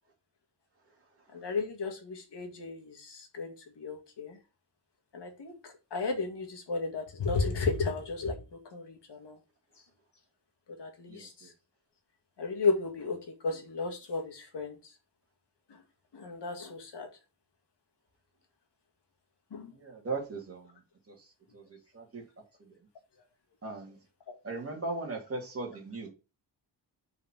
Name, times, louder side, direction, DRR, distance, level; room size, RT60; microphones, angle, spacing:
voice 1, 1.3-4.4 5.1-5.5 5.9-8.4 8.7-9.4 10.8-11.3 12.4-13.2 13.4-14.8 16.1-17.1 19.5-19.7 24.3-24.4, left 4 dB, 70° left, 3 dB, 2.0 m, -33 dB
voice 2, 19.8-20.7 21.1-21.2 21.5-21.6 21.9-22.2 23.6-24.0 24.4-26.1, right 3 dB, 30° right, 0 dB, 2.6 m, -37 dB
5.6 x 4.7 x 6.0 m, 0.30 s
wide cardioid pair, 175°, 43 cm